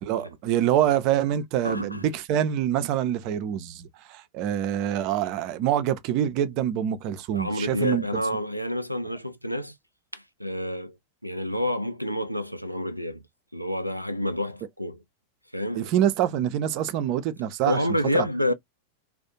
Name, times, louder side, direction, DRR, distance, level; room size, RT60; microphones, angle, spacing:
voice 1, 0.0-8.0 15.7-17.8 18.1-18.3, right 10 dB, 45° right, 0.4 m, -25 dB
voice 2, 1.6-2.0 7.3-9.7 10.1-11.0 11.2-13.2 13.5-15.0 15.5-15.8 17.7-18.5, left 1 dB, 90° left, 0.3 m, -28 dB
2.4 x 2.0 x 2.7 m
figure-of-eight pair, 90°, 0 cm